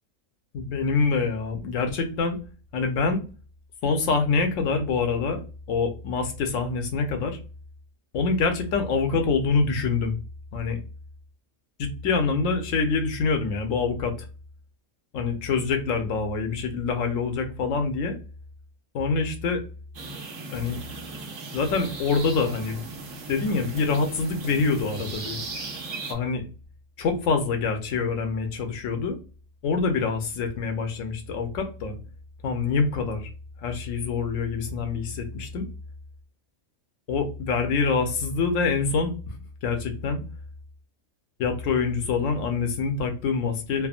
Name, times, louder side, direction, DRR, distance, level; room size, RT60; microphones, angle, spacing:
voice 1, 0.5-2.4 2.7-3.2 3.8-5.4 5.7-7.4 8.1-10.2 10.5-10.8 11.8-14.1 15.1-18.2 18.9-19.6 20.5-20.8 21.5-22.8 23.3-25.4 26.1-26.5 27.0-29.2 29.6-32.0 32.4-33.3 33.6-35.7 37.1-39.1 39.6-40.2 41.4-43.9, left 4 dB, 75° left, 5 dB, 1.0 m, -25 dB
sound 1, 19.9-26.1, right 3 dB, 75° right, 1.1 m, -37 dB
3.4 x 2.1 x 2.4 m, 0.34 s
omnidirectional pair, 1.4 m